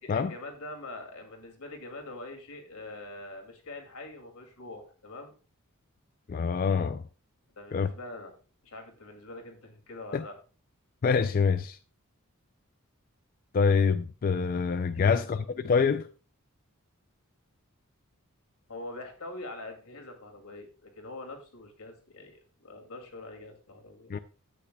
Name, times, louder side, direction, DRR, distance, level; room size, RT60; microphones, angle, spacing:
voice 1, 0.0-5.3 7.6-8.3 8.6-10.3 15.0-15.4 18.7-24.1, left 2 dB, 90° left, 2.3 m, -44 dB
voice 2, 6.3-7.0 7.7-7.9 10.1-10.2 11.0-11.8 13.5-15.4 15.6-16.1 24.1-24.2, left 5 dB, 40° left, 0.3 m, -25 dB
11.5 x 8.4 x 2.2 m
head